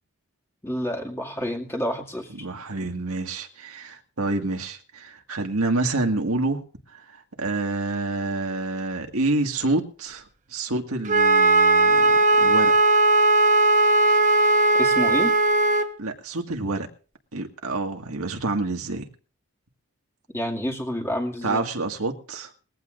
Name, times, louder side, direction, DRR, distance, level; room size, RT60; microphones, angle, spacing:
voice 1, 0.6-2.5 14.8-15.4 20.3-21.6, equal, 10° left, 2.2 m, -29 dB
voice 2, 2.3-6.6 6.9-10.2 10.5-12.7 16.0-16.9 17.3-19.0 21.4-22.5, right 2 dB, 80° right, 1.9 m, -28 dB
Wind instrument woodwind instrument, 11.1-15.9, right 2 dB, 35° right, 1.2 m, -18 dB
21.0 x 15.5 x 2.6 m
head